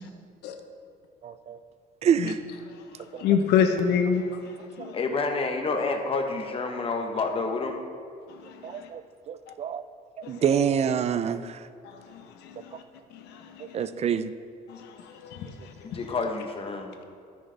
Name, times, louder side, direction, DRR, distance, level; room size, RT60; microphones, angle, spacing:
voice 1, 1.2-1.6 2.0-2.4 3.1-3.3 4.8-4.9 8.6-9.8 10.2-11.6 13.6-14.3, right 8 dB, 40° right, 13 dB, 0.4 m, -27 dB
voice 2, 3.2-4.2 4.8-5.0 8.4-8.8 10.2-10.3 12.1-12.5 13.5-13.6 14.7-14.8 15.2-15.5, left 7 dB, 85° left, 6 dB, 0.9 m, -25 dB
voice 3, 4.9-7.8 15.8-17.0, left 3 dB, 35° left, 4 dB, 1.0 m, -29 dB
13.0 x 6.4 x 3.4 m, 2.4 s
cardioid pair, 110°, 17 cm